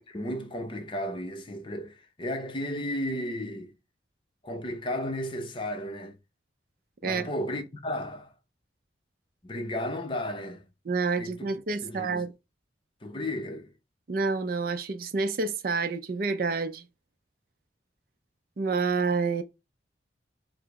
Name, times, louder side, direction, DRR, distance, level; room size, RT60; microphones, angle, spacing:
voice 1, 0.1-3.7 4.4-6.2 7.0-8.3 9.4-10.6 11.2-11.5 11.8-12.3 13.0-13.7, left 1 dB, 25° left, 0.6 m, -34 dB
voice 2, 10.9-12.3 14.1-16.8 18.6-19.4, right 4 dB, 50° right, 0.4 m, -28 dB
4.8 x 2.0 x 4.6 m
head